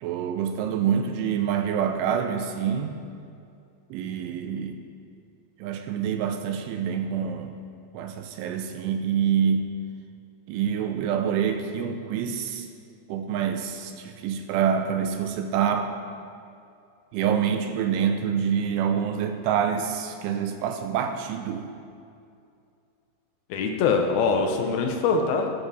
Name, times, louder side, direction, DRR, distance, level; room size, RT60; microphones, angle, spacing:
voice 1, 0.0-2.9 3.9-4.8 5.6-7.6 7.9-9.7 10.5-12.7 13.1-15.9 17.1-21.7, right 8 dB, 80° right, 6 dB, 3.0 m, -26 dB
voice 2, 23.5-25.5, left 4 dB, 85° left, 3 dB, 2.1 m, -23 dB
14.5 x 12.5 x 4.3 m, 2.5 s
omnidirectional pair, 5.8 m